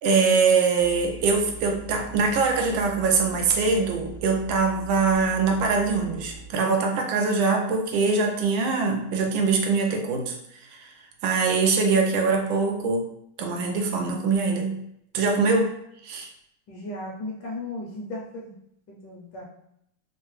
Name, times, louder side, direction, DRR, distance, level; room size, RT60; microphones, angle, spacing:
voice 1, 0.0-10.3 10.7-10.9 11.2-13.0 13.4-14.8 15.1-15.7 16.0-16.3, right 4 dB, 75° right, 3 dB, 1.3 m, -23 dB
sound 1, 0.8-6.5, right 2 dB, 85° left, 1.5 m, -42 dB
voice 2, 16.7-18.5 18.9-19.4, left 2 dB, 70° left, -3 dB, 1.1 m, -36 dB
3.8 x 2.1 x 3.0 m, 0.74 s
omnidirectional pair, 2.3 m